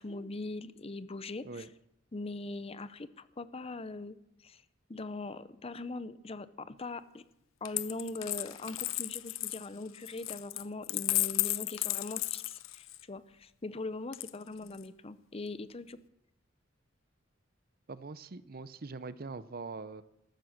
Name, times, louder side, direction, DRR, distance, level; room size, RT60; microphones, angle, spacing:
voice 1, 0.0-1.7 2.1-4.2 4.4-4.6 4.9-7.2 7.6-16.0, left 2 dB, 30° left, 15 dB, 0.6 m, -41 dB
Coin (dropping), 7.6-13.0 14.1-14.8, left 18 dB, 80° left, 0.6 m, -34 dB
voice 2, 17.9-20.0, right 4 dB, 45° right, 15 dB, 0.7 m, -42 dB
14.0 x 13.0 x 6.6 m, 0.81 s
head